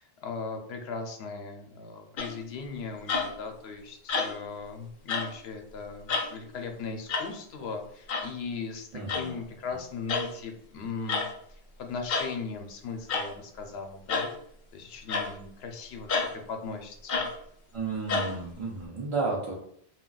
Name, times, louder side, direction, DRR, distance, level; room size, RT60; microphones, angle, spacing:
voice 1, 0.0-11.2 11.5-14.3 14.7-17.3, left 4 dB, 85° left, 4 dB, 0.8 m, -38 dB
sound 1, 2.2-2.5 3.1-3.5 4.1-4.5 5.1-5.3 6.1-6.4 7.1-7.3 8.1-8.3 9.1-9.3 10.1-10.3 11.1-11.3 12.1-12.3 13.1-13.3 14.1-14.3 15.1-15.3 16.1-16.3 17.1-17.3 18.1-18.3, left 4 dB, 60° left, 0.7 m, -29 dB
voice 2, 8.9-9.4 9.7-9.8 17.7-19.5, right 4 dB, 50° right, -4 dB, 0.4 m, -32 dB
2.3 x 2.2 x 3.7 m, 0.68 s
omnidirectional pair, 1.0 m